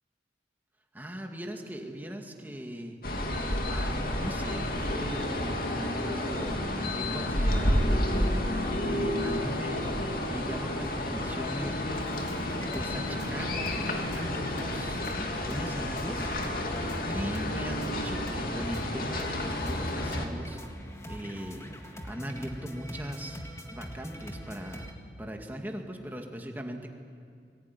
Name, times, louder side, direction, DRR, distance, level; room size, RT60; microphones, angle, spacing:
voice 1, 0.9-12.2 12.7-16.7 17.0-20.6 21.1-23.4 23.7-24.9 25.2-26.9, equal, 10° right, 2 dB, 2.2 m, -39 dB
sound 1, 3.0-20.3, left 1 dB, 55° left, 2.7 m, -30 dB
sound 2, 11.9-24.9, equal, 15° left, 1.8 m, -44 dB
24.5 x 22.5 x 9.8 m, 2.2 s
head